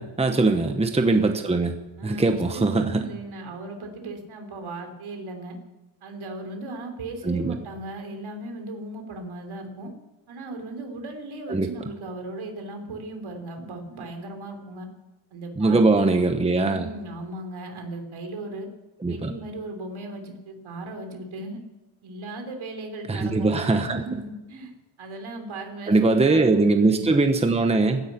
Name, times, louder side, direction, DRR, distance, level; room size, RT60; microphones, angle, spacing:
voice 1, 0.0-1.8 2.0-3.0 7.2-7.6 11.5-11.7 15.6-16.9 19.0-19.3 23.1-24.2 25.9-28.0, right 3 dB, 15° right, 6 dB, 0.9 m, -21 dB
voice 2, 2.0-5.6 6.0-9.9 10.3-14.9 15.3-16.0 16.4-18.7 19.1-21.6 22.0-23.5 23.9-24.7 25.0-27.1, right 2 dB, 75° right, 4 dB, 3.5 m, -37 dB
16.0 x 10.5 x 8.3 m, 1.1 s
wide cardioid pair, 175°, 49 cm